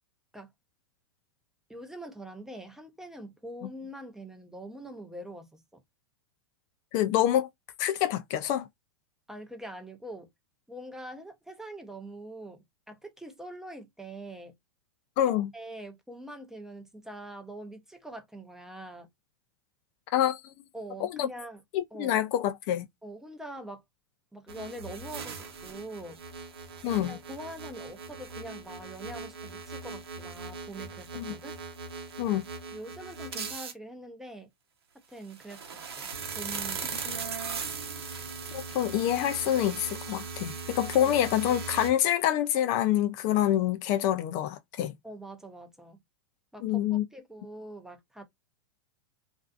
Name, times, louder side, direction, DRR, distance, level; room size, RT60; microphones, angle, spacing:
voice 1, 1.7-5.8 9.3-10.3 10.7-14.5 15.5-19.1 20.7-21.6 21.9-22.2 23.0-23.8 24.3-26.2 26.9-31.6 32.7-34.5 35.1-37.0 41.0-41.1 45.0-46.0 46.5-48.2, right 1 dB, 5° right, 0.5 m, -44 dB
voice 2, 6.9-7.5 7.8-8.7 15.2-15.5 20.1-20.5 21.0-21.3 21.7-22.8 26.8-27.2 31.2-31.3 32.2-32.5 37.1-37.2 38.5-44.9 46.6-47.0, left 11 dB, 45° left, 0.4 m, -26 dB
sound 1, 24.5-33.7 35.2-41.9, right 5 dB, 90° right, 0.8 m, -39 dB
2.5 x 2.3 x 2.3 m
hypercardioid pair, 115°, 13 cm